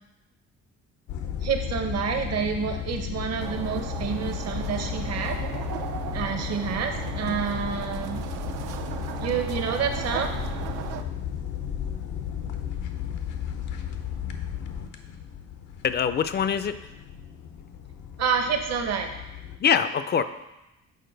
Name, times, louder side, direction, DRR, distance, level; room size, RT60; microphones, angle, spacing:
sound 1, 1.1-19.6, left 8 dB, 80° left, 0.7 m, -34 dB
voice 1, 1.4-5.4 6.1-8.2 9.2-10.3 18.2-19.1, right 6 dB, 55° right, 5 dB, 0.8 m, -28 dB
sound 2, 3.4-11.0, right 8 dB, 85° right, 0.5 m, -36 dB
voice 2, 15.8-16.8 19.6-20.2, left 7 dB, 35° left, 12 dB, 0.4 m, -23 dB
6.6 x 4.5 x 3.9 m, 0.95 s
cardioid pair, 90°, 30 cm